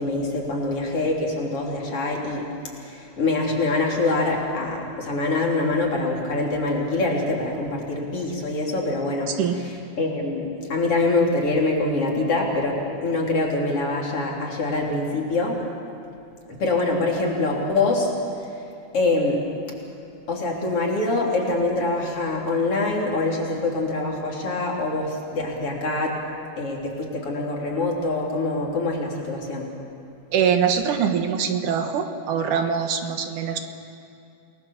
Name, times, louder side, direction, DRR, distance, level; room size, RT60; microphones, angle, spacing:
voice 1, 0.0-2.5 2.8-9.4 10.0-15.6 16.6-18.1 18.9-19.4 20.3-26.2 26.6-29.7, left 2 dB, 45° left, -2 dB, 3.9 m, -24 dB
voice 2, 9.3-9.6 30.3-33.6, right 7 dB, 75° right, 6 dB, 2.9 m, -23 dB
28.5 x 20.0 x 7.1 m, 2.6 s
omnidirectional pair, 3.6 m